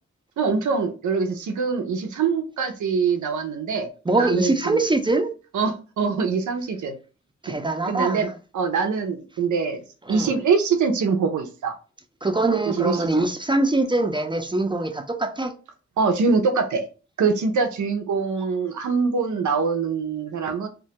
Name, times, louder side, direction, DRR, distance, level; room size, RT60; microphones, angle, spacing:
voice 1, 0.4-3.9 4.2-4.8 5.5-7.0 7.5-7.6 7.9-9.8 10.1-11.7 12.7-13.3 16.0-16.8 17.2-20.7, right 5 dB, 90° right, 0.5 m, -24 dB
voice 2, 4.1-5.3 7.4-8.3 10.1-10.3 12.2-15.5, right 2 dB, 15° right, 0.4 m, -23 dB
2.1 x 2.1 x 2.7 m
cardioid pair, 45°, 29 cm